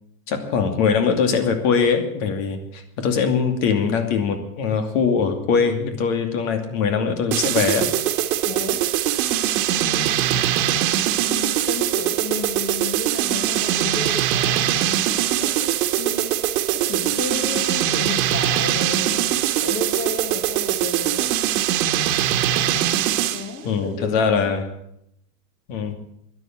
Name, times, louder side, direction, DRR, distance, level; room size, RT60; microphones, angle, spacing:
voice 1, 0.3-7.9 23.6-24.7 25.7-26.0, left 6 dB, 55° left, 7 dB, 2.7 m, -22 dB
sound 1, 7.3-23.5, right 11 dB, 65° right, 1.7 m, -22 dB
voice 2, 8.4-8.9 9.7-10.5 11.2-21.3 23.3-24.5, left 5 dB, 25° left, 5 dB, 1.8 m, -34 dB
12.5 x 10.5 x 8.9 m, 0.76 s
supercardioid pair, 140°, 46 cm